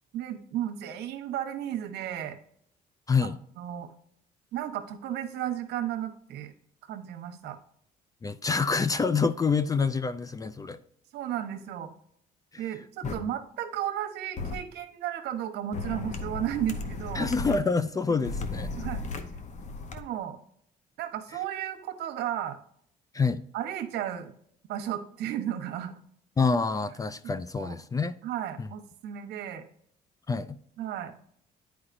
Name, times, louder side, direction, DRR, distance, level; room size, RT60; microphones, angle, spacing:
voice 1, 0.1-2.4 3.2-3.3 3.6-3.9 4.5-6.5 6.9-7.6 11.1-11.9 12.6-17.3 18.2-18.3 18.8-19.0 19.9-20.4 21.0-22.6 23.5-24.3 24.7-26.0 27.5-27.8 28.2-29.6 30.8-31.1, right 11 dB, 80° right, 1.1 m, -34 dB
voice 2, 3.1-3.4 8.2-10.8 12.5-12.6 17.1-18.7 23.1-23.4 26.4-28.1 28.6-28.7 30.3-30.6, left 4 dB, 20° left, 0.4 m, -27 dB
sound 1, 13.0-13.1 14.4-14.6 15.7-17.6 18.2-20.0, left 3 dB, 45° left, 0.9 m, -35 dB
9.6 x 4.9 x 2.6 m
cardioid pair, 110°, 17 cm